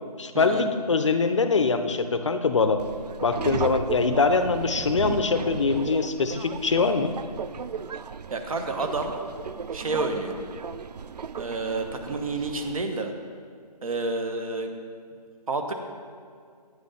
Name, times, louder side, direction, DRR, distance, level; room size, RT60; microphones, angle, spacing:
voice 1, 0.2-2.8 3.2-7.1, left 4 dB, 45° left, 9 dB, 0.5 m, -23 dB
Subway metro underground, 2.8-12.8, right 6 dB, 75° right, 0.4 m, -35 dB
voice 2, 8.3-9.1 9.7-10.3 11.4-13.1 13.8-14.7 15.5-15.7, right 3 dB, 55° right, 5 dB, 1.1 m, -29 dB
9.3 x 6.3 x 5.5 m, 2.2 s
figure-of-eight pair, 160°, 21 cm